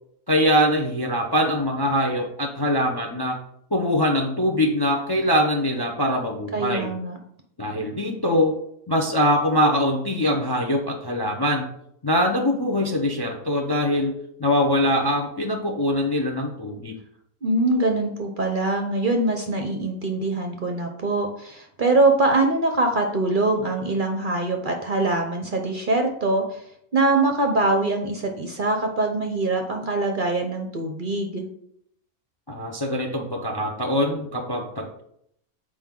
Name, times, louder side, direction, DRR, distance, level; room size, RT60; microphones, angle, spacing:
voice 1, 0.3-3.4 3.7-6.9 7.6-8.6 8.9-11.7 12.0-14.1 14.4-16.9 32.5-35.0, equal, 25° left, 2 dB, 0.6 m, -23 dB
voice 2, 6.5-7.2 17.4-26.6 26.9-31.4, right 2 dB, 45° right, 3 dB, 0.8 m, -23 dB
7.5 x 4.9 x 3.7 m, 0.72 s
omnidirectional pair, 1.5 m